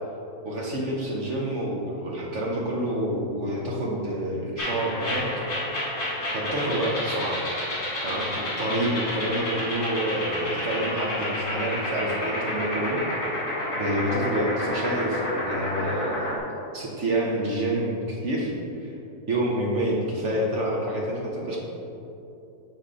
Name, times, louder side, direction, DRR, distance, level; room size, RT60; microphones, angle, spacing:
voice 1, 0.4-5.3 6.3-7.4 8.0-13.0 13.7-16.3 16.7-18.5 18.8-18.9 19.3-21.6, right 1 dB, 50° right, -3 dB, 1.0 m, -28 dB
sound 1, 4.6-16.4, left 1 dB, 55° left, 2.4 m, -30 dB
8.4 x 4.2 x 4.8 m, 2.8 s
omnidirectional pair, 2.0 m